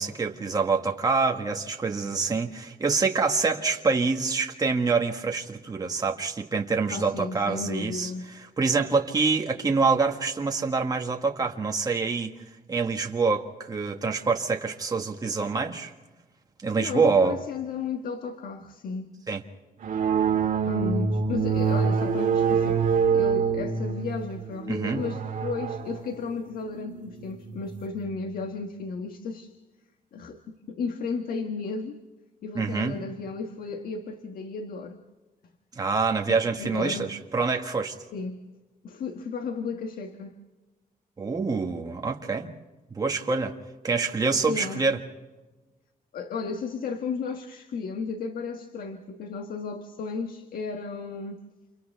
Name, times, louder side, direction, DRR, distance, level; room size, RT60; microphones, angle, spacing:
voice 1, 0.0-12.3 12.7-15.9 16.6-17.4 19.3-19.4 24.7-25.0 32.5-33.0 35.7-38.0 41.2-42.5 42.9-43.5 43.8-45.0, right 4 dB, 25° right, 1.6 m, -26 dB
voice 2, 6.9-8.2 16.8-19.1 20.6-22.8 23.1-29.5 30.1-32.0 32.4-35.0 36.3-37.1 38.1-38.4 38.8-40.4 44.5-44.8 46.1-51.4, left 4 dB, 70° left, 1.4 m, -34 dB
sound 1, 19.8-27.9, right 6 dB, 60° right, 2.2 m, -26 dB
29.5 x 28.5 x 3.5 m
wide cardioid pair, 150°, 15 cm